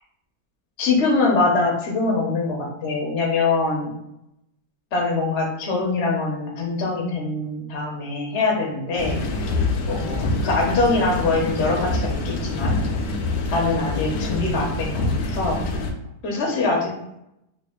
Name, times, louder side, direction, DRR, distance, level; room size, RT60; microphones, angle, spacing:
voice 1, 0.8-3.9 4.9-9.2 9.9-12.8 13.5-15.6 16.2-16.9, left 3 dB, 55° left, -1 dB, 0.7 m, -23 dB
sound 1, 9.0-15.9, left 2 dB, 75° left, 1.0 m, -25 dB
3.3 x 2.6 x 3.6 m, 0.82 s
omnidirectional pair, 2.2 m